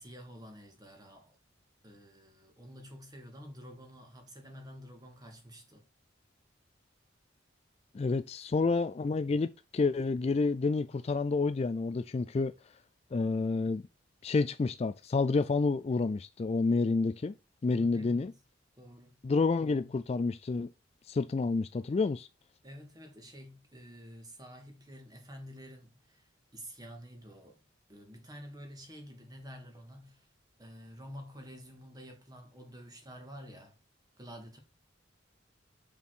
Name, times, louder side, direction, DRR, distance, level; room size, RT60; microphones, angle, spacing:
voice 1, 0.0-1.4 1.8-5.9 17.7-18.4 18.7-19.2 22.6-27.6 27.9-30.3 30.6-33.7 34.2-34.6, equal, 20° right, 1.8 m, -49 dB
voice 2, 7.9-12.5 13.1-13.8 14.2-17.3 17.6-18.3 19.2-20.7 21.1-22.3, left 3 dB, 30° left, 0.3 m, -29 dB
6.2 x 5.7 x 4.5 m
head